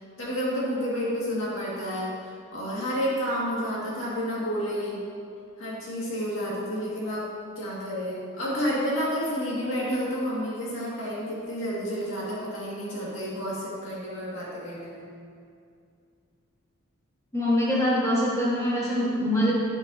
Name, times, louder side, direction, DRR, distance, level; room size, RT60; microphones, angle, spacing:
voice 1, 0.2-2.1 2.5-5.0 5.6-7.3 7.6-15.0, equal, 65° left, -6 dB, 2.1 m, -30 dB
voice 2, 17.3-19.5, equal, 15° left, -8 dB, 1.6 m, -24 dB
9.7 x 7.8 x 2.8 m, 2.3 s
head